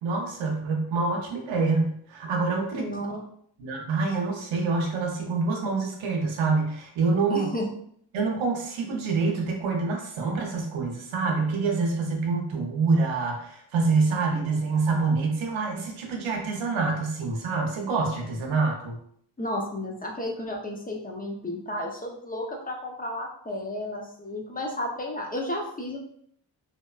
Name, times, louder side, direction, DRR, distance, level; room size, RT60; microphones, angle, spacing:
voice 1, 0.0-2.9 3.6-7.5 8.1-19.0, right 4 dB, 90° right, 1 dB, 0.6 m, -26 dB
voice 2, 2.7-3.2 7.3-7.7 19.4-26.0, left 1 dB, 20° left, 0 dB, 0.6 m, -32 dB
2.7 x 2.1 x 2.3 m, 0.66 s
supercardioid pair, 45°, 46 cm